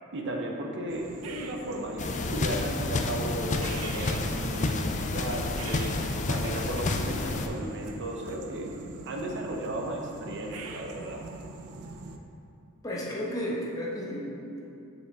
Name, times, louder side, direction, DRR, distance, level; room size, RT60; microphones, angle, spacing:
voice 1, 0.1-6.0 6.3-8.7 9.0-11.2, right 1 dB, 55° right, 1 dB, 0.9 m, -35 dB
sound 1, 0.9-12.2, right 3 dB, 80° right, 0.6 m, -44 dB
sound 2, 2.0-7.5, left 3 dB, 35° left, 0.4 m, -30 dB
voice 2, 12.8-14.6, equal, 15° left, -5 dB, 1.3 m, -33 dB
7.1 x 6.7 x 4.1 m, 2.6 s
head